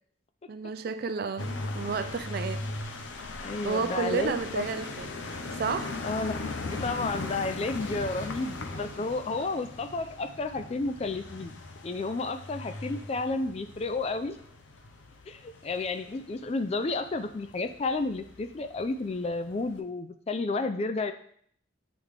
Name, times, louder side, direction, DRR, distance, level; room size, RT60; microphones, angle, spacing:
voice 1, 0.5-2.6 3.6-5.2 5.5-6.0, right 5 dB, 50° right, 11 dB, 0.3 m, -31 dB
sound 1, 1.4-19.8, left 2 dB, 70° left, 0.7 m, -39 dB
voice 2, 3.4-4.8 6.0-11.5 11.8-14.4 15.3-21.1, left 3 dB, 30° left, 8 dB, 0.3 m, -32 dB
8.1 x 3.6 x 3.3 m, 0.62 s
head